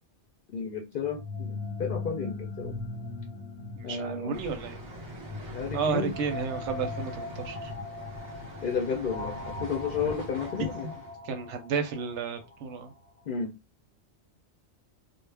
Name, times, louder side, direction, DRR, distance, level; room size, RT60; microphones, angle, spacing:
voice 1, 0.5-2.8 3.8-4.4 5.5-6.1 8.6-10.9 13.3-13.6, left 5 dB, 60° left, 0.6 m, -32 dB
sound 1, 1.0-12.9, left 3 dB, 10° left, 0.8 m, -39 dB
voice 2, 3.8-4.8 5.7-7.7 10.0-10.1 11.2-12.9, right 6 dB, 85° right, 0.9 m, -32 dB
sound 2, 4.3-11.1, right 1 dB, 30° right, 0.7 m, -44 dB
2.4 x 2.0 x 3.2 m
omnidirectional pair, 1.2 m